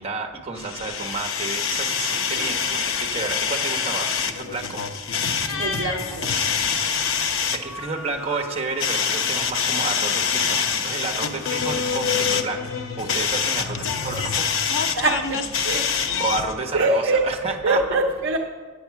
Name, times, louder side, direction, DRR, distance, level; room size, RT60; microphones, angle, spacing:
voice 1, 0.0-4.8 7.3-12.7 13.0-14.5 15.0-15.1 16.2-17.8, right 3 dB, 30° right, 4 dB, 1.1 m, -31 dB
sound 1, 0.6-16.5, left 6 dB, 65° left, 0.7 m, -25 dB
voice 2, 5.6-6.4 14.1-14.2 14.9-16.0 16.7-17.2 17.5-18.4, right 2 dB, 55° right, 2 dB, 0.7 m, -24 dB
8.7 x 8.2 x 5.8 m, 1.4 s
head